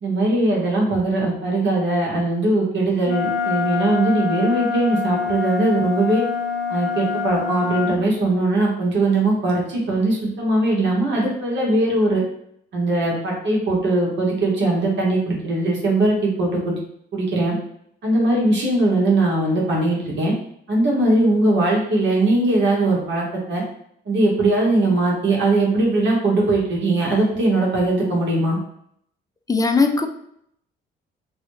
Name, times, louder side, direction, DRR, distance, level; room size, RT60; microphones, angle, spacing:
voice 1, 0.0-6.2 6.7-12.2 12.7-16.8 17.1-17.5 18.0-20.3 20.7-23.6 24.1-28.6, right 2 dB, 65° right, -3 dB, 1.4 m, -20 dB
Wind instrument woodwind instrument, 3.0-8.0, left 6 dB, 75° left, 0.5 m, -25 dB
voice 2, 29.5-30.1, left 4 dB, 15° left, 5 dB, 0.4 m, -18 dB
3.1 x 2.7 x 3.1 m, 0.71 s
cardioid pair, 90°, 20 cm